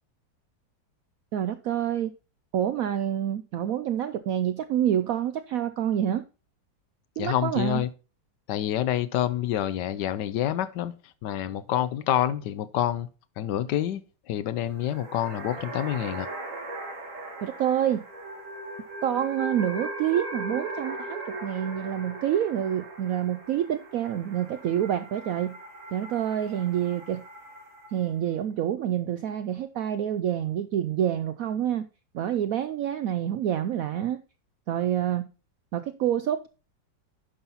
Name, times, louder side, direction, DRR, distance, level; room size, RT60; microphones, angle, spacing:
voice 1, 1.3-2.1 2.5-6.2 7.2-7.8 17.4-18.0 19.0-25.6 25.9-27.2 27.9-31.9 32.1-34.2 34.7-35.3 35.7-36.5, right 10 dB, 75° right, 0.8 m, -27 dB
voice 2, 7.2-7.9 8.5-10.9 11.2-13.1 13.4-14.0 14.3-16.3, left 11 dB, 75° left, 1.2 m, -27 dB
sound 1, 14.7-28.1, right 2 dB, 45° right, 2.4 m, -39 dB
10.5 x 5.6 x 4.0 m
omnidirectional pair, 2.0 m